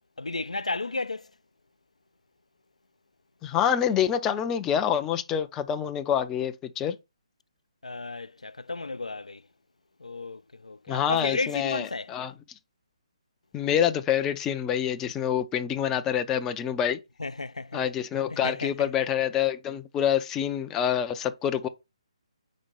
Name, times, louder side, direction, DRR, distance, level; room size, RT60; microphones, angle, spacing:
voice 1, 0.2-1.2 7.8-9.4 10.0-12.1 17.2-17.8 18.3-18.7, left 3 dB, 80° left, 0.4 m, -33 dB
voice 2, 3.4-7.0 10.9-12.3 13.5-17.0 17.7-21.7, left 9 dB, 15° left, 0.4 m, -26 dB
5.0 x 4.2 x 5.2 m
figure-of-eight pair, 145°, 3 cm